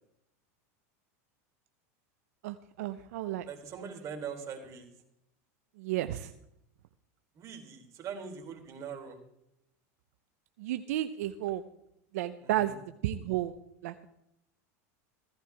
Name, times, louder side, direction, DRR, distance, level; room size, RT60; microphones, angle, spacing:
voice 1, 2.4-3.5 5.8-6.3 10.6-11.6 12.1-12.8 13.0-13.5 13.8-14.0, right 13 dB, 75° right, 9 dB, 0.9 m, -32 dB
voice 2, 3.5-4.9 7.3-9.2 12.4-12.8, right 6 dB, 35° right, 3 dB, 4.0 m, -42 dB
16.0 x 15.5 x 3.6 m, 0.78 s
supercardioid pair, 120°, 8 cm